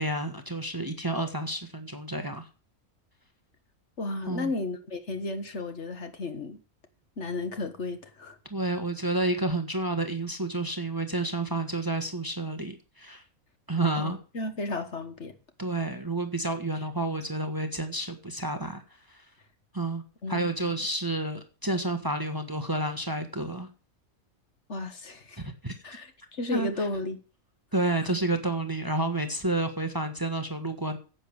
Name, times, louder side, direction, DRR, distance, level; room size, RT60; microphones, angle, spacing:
voice 1, 0.0-2.5 4.3-4.5 8.5-13.2 13.7-14.2 15.6-18.8 19.1-19.2 19.7-20.0 20.3-23.7 25.4-25.8 26.5-26.7 27.7-31.0, right 2 dB, 15° right, 1.4 m, -30 dB
voice 2, 4.0-6.6 7.2-8.4 13.9-15.3 20.2-20.7 24.7-25.4 25.8-27.2 28.0-28.2, left 2 dB, 55° left, 1.7 m, -34 dB
10.0 x 8.3 x 7.0 m
omnidirectional pair, 1.4 m